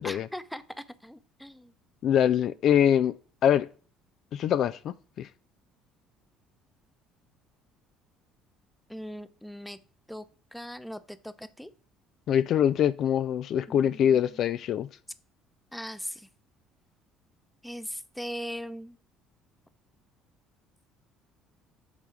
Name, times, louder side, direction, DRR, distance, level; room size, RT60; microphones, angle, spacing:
voice 1, 0.0-1.7 8.9-9.8 10.1-10.2 10.5-11.7 13.7-14.4 15.7-16.3 17.6-19.0, equal, 5° left, 0.8 m, -40 dB
voice 2, 2.0-3.1 3.4-3.7 4.3-5.3 12.3-14.9, left 9 dB, 55° left, 0.3 m, -24 dB
8.2 x 3.6 x 6.0 m
hypercardioid pair, 60°, 0 cm